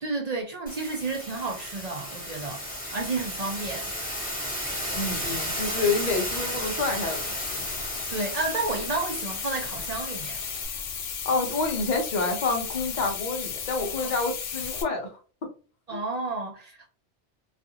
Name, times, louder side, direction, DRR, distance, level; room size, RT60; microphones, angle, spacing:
voice 1, 0.0-2.6 2.9-3.9 8.1-10.4 14.0-14.1 15.9-16.9, right 3 dB, 55° right, 0.4 m, -31 dB
sound 1, 0.7-10.7, equal, 10° left, 0.8 m, -34 dB
voice 2, 4.9-7.6 11.2-15.5 15.9-16.0, left 3 dB, 45° left, 0.7 m, -28 dB
sound 2, 6.9-14.8, left 6 dB, 85° left, 1.0 m, -35 dB
2.4 x 2.3 x 2.7 m
omnidirectional pair, 1.2 m